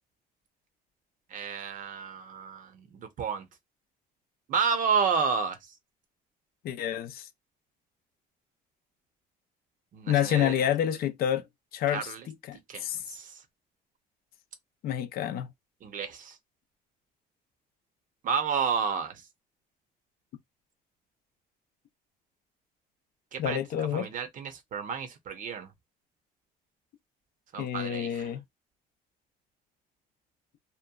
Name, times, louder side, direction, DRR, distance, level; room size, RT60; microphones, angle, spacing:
voice 1, 1.3-3.5 4.5-5.6 9.9-10.6 11.9-12.3 12.5-13.4 15.8-16.4 18.2-19.2 23.3-25.7 27.5-28.3, right 6 dB, 50° right, 0.7 m, -31 dB
voice 2, 6.6-7.3 10.1-11.4 11.7-13.0 14.8-15.5 23.4-24.1 27.6-28.4, left 10 dB, 65° left, 0.4 m, -28 dB
2.9 x 2.1 x 2.3 m
cardioid pair, 110°, 17 cm